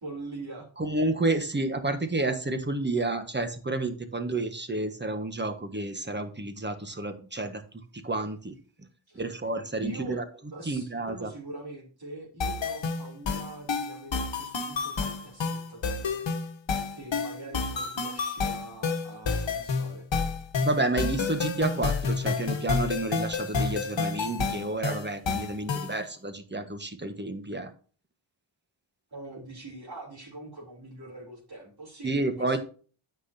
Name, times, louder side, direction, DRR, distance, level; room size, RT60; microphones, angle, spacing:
voice 1, 0.0-0.7 9.1-9.2 9.8-10.2 10.5-16.3 17.0-20.1 29.1-32.1 32.4-32.6, right 2 dB, 50° right, -3 dB, 3.4 m, -43 dB
voice 2, 0.8-7.6 8.0-8.6 9.1-10.2 10.6-11.3 20.6-27.7 32.0-32.6, right 2 dB, 20° right, 8 dB, 1.3 m, -30 dB
sound 1, 12.4-26.0, left 4 dB, 60° left, 1.4 m, -30 dB
9.7 x 7.9 x 2.7 m, 0.39 s
wide cardioid pair, 120°, 49 cm